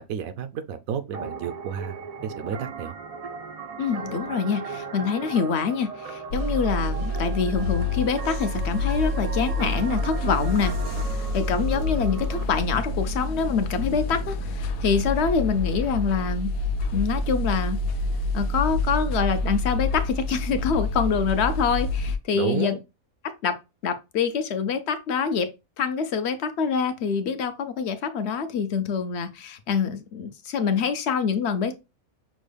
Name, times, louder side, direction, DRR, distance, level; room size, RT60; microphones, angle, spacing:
voice 1, 0.0-2.9 22.3-22.8, right 7 dB, 80° right, 1.0 m, -31 dB
sound 1, 1.1-12.4, right 5 dB, 60° right, 0.4 m, -37 dB
voice 2, 3.8-10.7 11.1-16.5 16.9-17.8 18.3-22.7 23.2-25.5 25.8-31.7, left 6 dB, 60° left, 0.8 m, -25 dB
sound 2, 6.3-22.2, left 2 dB, 80° left, 1.1 m, -28 dB
6.1 x 2.2 x 3.3 m
omnidirectional pair, 1.5 m